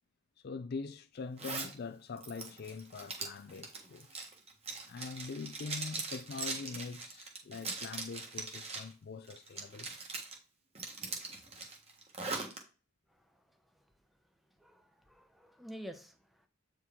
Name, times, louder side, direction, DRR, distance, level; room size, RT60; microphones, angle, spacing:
voice 1, 0.4-4.1 4.9-9.9, left 4 dB, 50° left, 0.4 m, -43 dB
Zipper (clothing), 1.4-1.7 2.2-8.9 9.3-10.3 10.7-12.6, right 3 dB, 30° right, 1.4 m, -41 dB
voice 2, 13.1-13.8 14.6-16.5, equal, ahead, 0.8 m, -50 dB
8.3 x 4.6 x 3.6 m
head